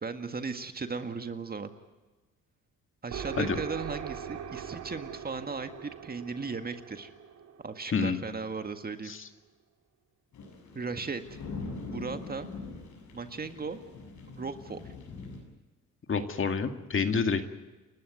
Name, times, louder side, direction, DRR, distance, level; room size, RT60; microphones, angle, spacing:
voice 1, 0.0-1.7 3.0-7.1 7.6-9.1 10.7-11.4 11.9-12.5 13.1-13.8 14.4-14.8, right 4 dB, 30° right, 8 dB, 1.9 m, -36 dB
sound 1, 3.1-8.7, right 8 dB, 65° right, 2.5 m, -41 dB
sound 2, 10.3-15.4, left 3 dB, 70° left, 7.2 m, -42 dB
voice 2, 16.1-17.5, left 5 dB, 45° left, 7 dB, 2.1 m, -28 dB
29.5 x 13.0 x 9.5 m, 1.2 s
cardioid pair, 90°, 30 cm